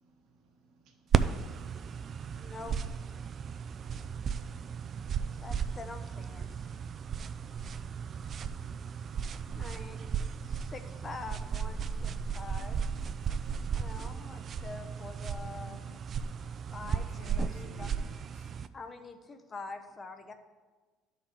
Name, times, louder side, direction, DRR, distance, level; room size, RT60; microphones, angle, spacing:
voice 1, 0.0-2.6, right 3 dB, 65° right, 2 dB, 1.3 m, -67 dB
sound 1, 1.1-18.7, right 6 dB, 40° right, 0.3 m, -35 dB
voice 2, 2.4-2.8 5.4-6.4 9.5-10.0 10.4-12.8 13.7-15.8 16.7-17.1 17.3-18.0 18.7-20.3, left 3 dB, 30° left, 7 dB, 0.7 m, -45 dB
voice 3, 15.6-16.2 16.8-18.6, left 7 dB, 80° left, 7 dB, 0.7 m, -54 dB
11.5 x 3.9 x 4.4 m, 1.4 s
supercardioid pair, 105°, 0 cm